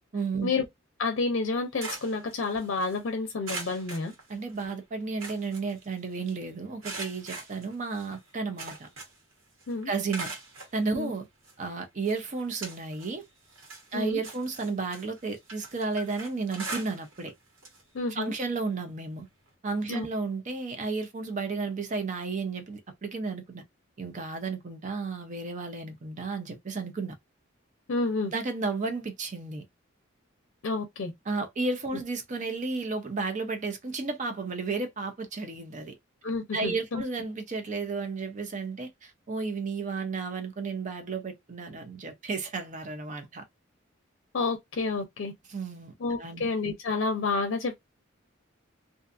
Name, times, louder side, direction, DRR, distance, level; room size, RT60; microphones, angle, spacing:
voice 1, 0.1-0.5 4.3-8.9 9.9-10.3 10.7-11.3 11.6-13.2 13.9-17.3 18.1-19.3 19.6-23.6 24.0-27.2 28.3-29.6 31.3-35.9 36.5-43.4 45.5-46.5, right 4 dB, 35° right, 0.5 m, -33 dB
voice 2, 1.0-4.1 9.7-9.9 10.9-11.1 13.9-14.2 17.9-18.3 19.9-20.1 27.9-28.3 30.6-31.1 36.2-37.0 44.3-45.3 46.0-47.8, left 3 dB, 65° left, 0.5 m, -29 dB
sound 1, 1.4-3.0 3.4-4.7 5.0-6.3 6.8-9.3 9.6-10.7 11.4-11.5 12.0-13.2 13.5-17.3 17.6-17.8 18.2-18.3 19.5-19.6, right 3 dB, 85° right, 1.3 m, -41 dB
2.5 x 2.4 x 2.4 m
head